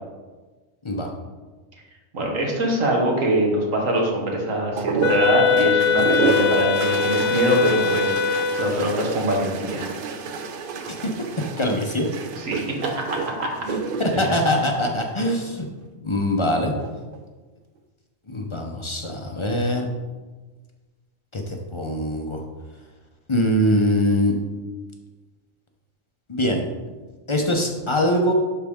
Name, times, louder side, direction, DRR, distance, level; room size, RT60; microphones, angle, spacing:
voice 1, 2.1-9.9 12.4-12.8 13.4-13.5 14.1-14.4, right 1 dB, 85° right, 0 dB, 1.8 m, -23 dB
sound 1, 4.8-15.4 16.6-17.2, right 5 dB, 60° right, 0.6 m, -30 dB
Wind instrument woodwind instrument, 5.0-8.8, left 6 dB, 70° left, 0.9 m, -22 dB
voice 2, 11.6-12.1 13.7-15.7 16.0-16.7 18.3-19.9 21.3-22.4 23.3-24.3 26.3-26.6 27.3-28.3, left 1 dB, 30° left, 2 dB, 0.6 m, -23 dB
11.5 x 4.1 x 3.6 m, 1.3 s
omnidirectional pair, 1.3 m